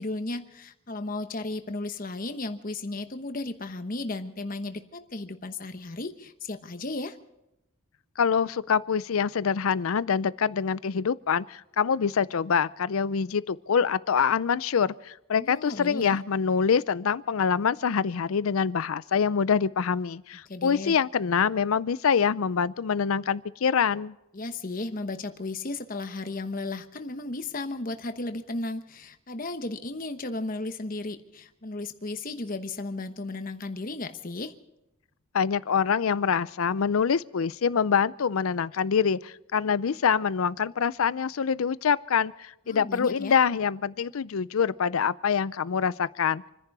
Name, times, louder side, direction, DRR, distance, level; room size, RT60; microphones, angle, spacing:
voice 1, 0.0-7.2 15.4-16.2 20.4-21.0 24.3-34.5 42.7-43.3, left 2 dB, 40° left, 8 dB, 1.0 m, -34 dB
voice 2, 8.2-24.1 35.3-46.4, left 6 dB, 80° left, 18 dB, 0.5 m, -25 dB
27.5 x 10.5 x 4.8 m, 0.87 s
head